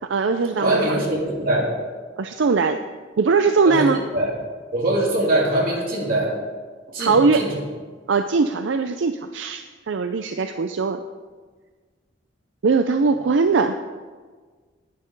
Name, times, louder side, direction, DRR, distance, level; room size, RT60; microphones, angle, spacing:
voice 1, 0.0-0.8 2.2-2.8 3.2-4.0 7.0-7.5 8.1-11.0 12.6-13.8, right 4 dB, 75° right, 8 dB, 0.5 m, -20 dB
voice 2, 0.6-1.8 3.6-4.3 4.7-6.4 6.9-7.5, right 1 dB, 50° right, -3 dB, 3.1 m, -22 dB
10.5 x 9.6 x 5.3 m, 1.5 s
head